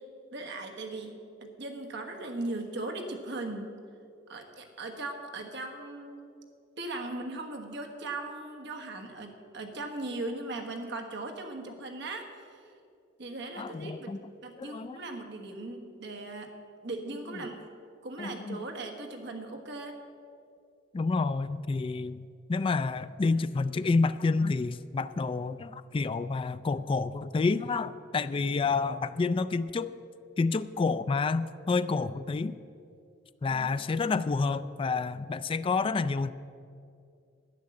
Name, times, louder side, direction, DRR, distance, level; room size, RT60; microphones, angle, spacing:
voice 1, 0.3-3.7 4.3-6.4 6.8-12.7 13.2-14.1 14.4-16.5 16.8-17.6 18.0-20.0 33.5-33.7, right 2 dB, 60° right, 4 dB, 1.4 m, -38 dB
voice 2, 13.6-14.3 14.6-15.0 18.2-18.6 20.9-22.2 22.5-29.9 30.4-32.5 33.4-36.3, left 4 dB, 25° left, 13 dB, 0.3 m, -29 dB
10.5 x 9.9 x 7.7 m, 2.5 s
head